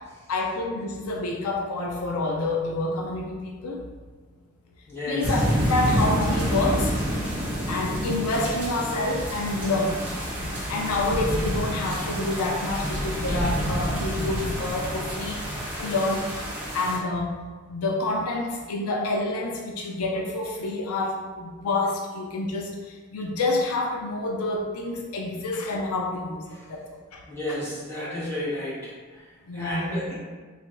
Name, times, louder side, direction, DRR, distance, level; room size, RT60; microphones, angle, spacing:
voice 1, 0.3-3.8 5.1-6.9 7.7-10.0 10.7-15.4 15.8-16.3 16.7-17.4 17.7-27.2 29.5-29.9, left 2 dB, 80° left, 1 dB, 0.4 m, -28 dB
voice 2, 4.9-5.4 26.5-26.6 27.3-30.1, left 1 dB, 10° left, -11 dB, 1.3 m, -32 dB
sound 1, 5.2-17.0, equal, 5° right, 0.9 m, -28 dB
3.0 x 2.4 x 4.2 m, 1.4 s
head